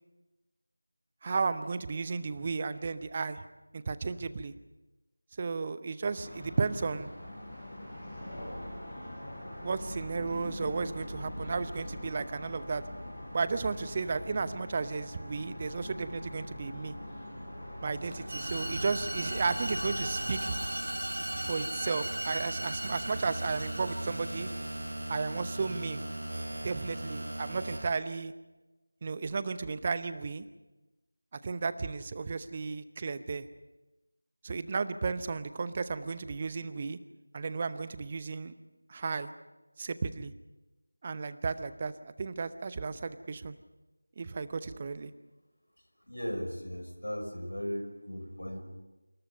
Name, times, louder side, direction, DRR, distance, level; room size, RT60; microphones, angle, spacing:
voice 1, 1.2-3.4 3.7-4.5 5.4-7.1 9.5-12.8 13.3-17.0 17.8-20.5 21.3-24.5 25.1-26.0 26.6-28.3 29.0-30.4 31.3-33.5 34.4-37.0 37.3-38.5 38.9-39.3 39.8-40.3 41.0-43.6 44.2-45.1, right 4 dB, 20° right, 13 dB, 0.8 m, -34 dB
sound 1, 6.1-20.7, left 1 dB, 25° left, 7.8 m, -42 dB
sound 2, 17.9-25.7, right 1 dB, 60° right, 4.4 m, -42 dB
sound 3, 18.3-27.8, right 1 dB, 40° right, 6.5 m, -37 dB
voice 2, 46.1-48.6, equal, 70° left, 5 dB, 6.4 m, -37 dB
27.5 x 27.0 x 5.5 m, 1.1 s
figure-of-eight pair, 170°, 0 cm